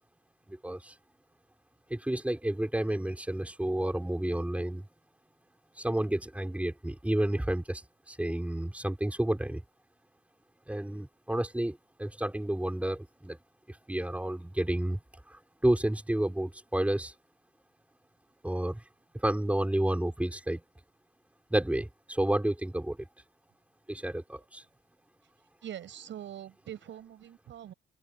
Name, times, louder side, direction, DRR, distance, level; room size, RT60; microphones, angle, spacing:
voice 1, 0.5-0.9 1.9-4.8 5.8-7.8 8.1-9.6 10.7-13.4 13.7-15.0 15.3-17.1 18.4-18.8 19.1-20.6 21.5-23.1 23.9-24.6, right 1 dB, 5° right, 5.8 m, -30 dB
voice 2, 25.6-27.7, right 10 dB, 70° right, 7.1 m, -43 dB
open air
cardioid pair, 90°, 20 cm